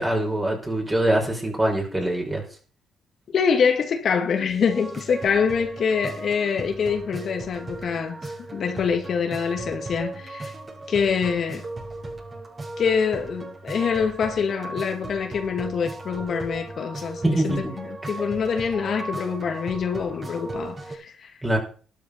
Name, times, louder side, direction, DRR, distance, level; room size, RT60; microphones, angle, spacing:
voice 1, 0.0-2.4 17.2-17.6 21.4-21.6, right 1 dB, 15° right, 5.1 m, -23 dB
voice 2, 3.3-10.5 10.9-11.6 12.8-21.4, left 6 dB, 55° left, 1.9 m, -25 dB
sound 1, 4.5-20.9, right 2 dB, 30° right, 6.4 m, -37 dB
12.5 x 10.5 x 5.3 m
cardioid pair, 90°, 0 cm